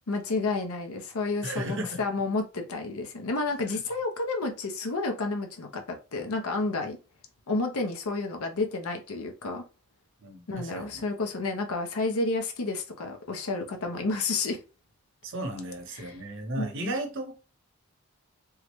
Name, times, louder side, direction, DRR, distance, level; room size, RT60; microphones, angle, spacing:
voice 1, 0.1-7.0 7.5-9.6 10.5-14.6 16.0-16.2 16.6-16.9, left 3 dB, 75° left, 0.6 m, -30 dB
voice 2, 1.4-2.0 3.7-3.8 10.2-11.0 15.2-17.3, right 1 dB, 60° right, 0.8 m, -35 dB
3.6 x 2.1 x 3.0 m
head